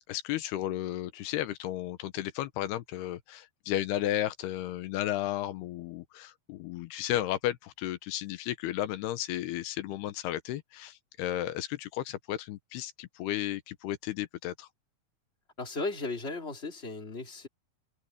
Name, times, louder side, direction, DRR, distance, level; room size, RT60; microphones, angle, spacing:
voice 1, 0.1-14.7, left 13 dB, 85° left, 3.0 m, -33 dB
voice 2, 15.6-17.5, left 3 dB, 15° left, 3.4 m, -36 dB
omnidirectional pair, 4.6 m